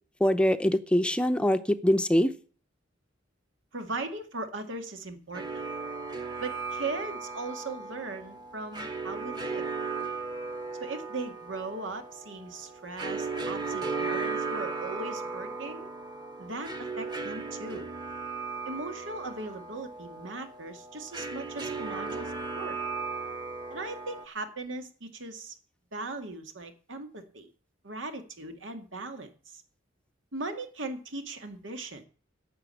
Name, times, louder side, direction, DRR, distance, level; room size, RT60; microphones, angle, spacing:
voice 1, 0.2-2.3, equal, 5° left, 10 dB, 0.6 m, -23 dB
voice 2, 3.7-5.6 6.4-9.7 10.8-15.9 16.4-17.9 18.7-22.8 23.7-25.6 25.9-27.5 27.8-29.6 30.3-32.1, right 3 dB, 90° right, 6 dB, 2.0 m, -38 dB
sound 1, 5.3-24.2, right 4 dB, 25° right, 1.2 m, -36 dB
11.0 x 7.1 x 8.2 m, 0.40 s
head